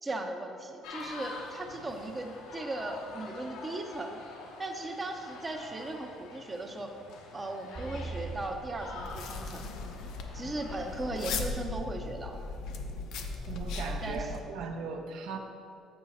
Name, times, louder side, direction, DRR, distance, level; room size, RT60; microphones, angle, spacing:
voice 1, 0.0-4.2 4.6-6.9 7.3-9.7 10.3-12.4 14.0-14.3, right 2 dB, 20° right, 3 dB, 0.6 m, -37 dB
sound 1, 0.8-11.5, left 3 dB, 90° left, 0.9 m, -46 dB
sound 2, 7.7-10.4, right 4 dB, 40° right, 1.1 m, -43 dB
sound 3, 9.0-14.4, left 3 dB, 70° left, 0.6 m, -38 dB
voice 2, 13.5-15.4, right 4 dB, 75° right, 4 dB, 0.6 m, -38 dB
7.7 x 4.8 x 4.1 m, 2.4 s
cardioid pair, 130°, 0 cm